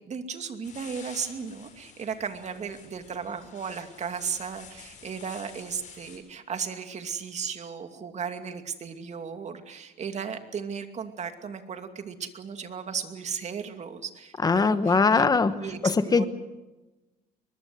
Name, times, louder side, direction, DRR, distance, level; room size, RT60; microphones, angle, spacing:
voice 1, 0.0-15.3 15.6-16.3, right 6 dB, 40° right, 7 dB, 2.6 m, -35 dB
sound 1, 0.6-6.2, left 6 dB, 45° left, 6.4 m, -49 dB
voice 2, 14.4-16.2, left 4 dB, 20° left, 11 dB, 1.3 m, -22 dB
23.0 x 21.0 x 7.9 m, 1.1 s
cardioid pair, 110°, 17 cm